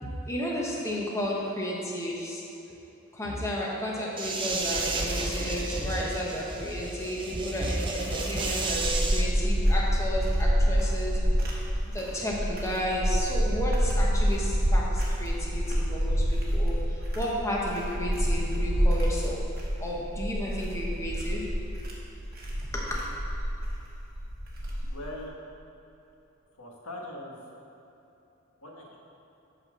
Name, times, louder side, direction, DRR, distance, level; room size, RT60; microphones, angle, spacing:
voice 1, 0.0-2.4 3.1-11.2 11.9-19.4 19.8-21.4 22.7-23.0, equal, 15° left, -4 dB, 1.0 m, -32 dB
sound 1, 4.2-9.2, right 2 dB, 20° right, 0.6 m, -32 dB
sound 2, 8.3-25.1, equal, 40° right, 1.3 m, -27 dB
voice 2, 24.9-25.3 26.6-27.4 28.6-29.0, left 1 dB, 80° left, -1 dB, 1.3 m, -40 dB
8.5 x 4.3 x 6.2 m, 2.9 s
head